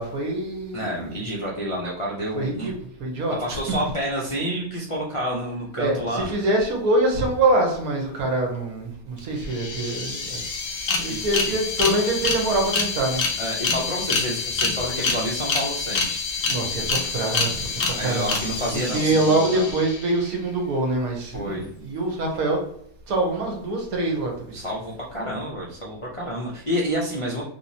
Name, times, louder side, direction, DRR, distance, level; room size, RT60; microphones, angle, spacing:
voice 1, 0.0-1.2 2.3-2.7 3.0-3.3 5.8-10.4 11.0-13.2 16.4-18.4 18.9-22.6 23.1-24.5, right 2 dB, 75° right, 1 dB, 1.3 m, -24 dB
voice 2, 0.7-2.7 3.4-6.3 11.1-11.2 13.4-16.3 17.9-19.7 21.3-21.7 24.5-27.4, equal, 50° left, -5 dB, 0.4 m, -29 dB
sound 1, 9.2-9.3 9.5-20.3, left 4 dB, 65° left, 1.0 m, -27 dB
3.5 x 2.9 x 2.7 m, 0.69 s
omnidirectional pair, 1.6 m